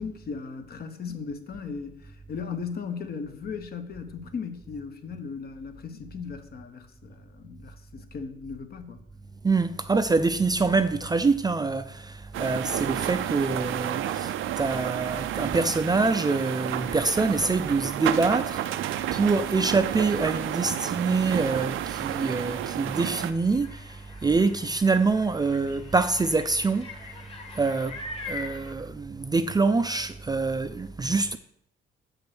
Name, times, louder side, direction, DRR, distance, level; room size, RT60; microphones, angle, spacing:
voice 1, 0.0-9.0, left 5 dB, 50° left, 1.1 m, -37 dB
voice 2, 9.4-27.2 27.5-28.0 28.3-31.4, right 3 dB, 20° right, 0.4 m, -25 dB
sound 1, 12.3-23.3, right 12 dB, 80° right, 0.5 m, -31 dB
sound 2, 22.2-28.7, left 3 dB, 30° left, 1.7 m, -43 dB
6.5 x 5.3 x 6.1 m
cardioid pair, 90°, 20 cm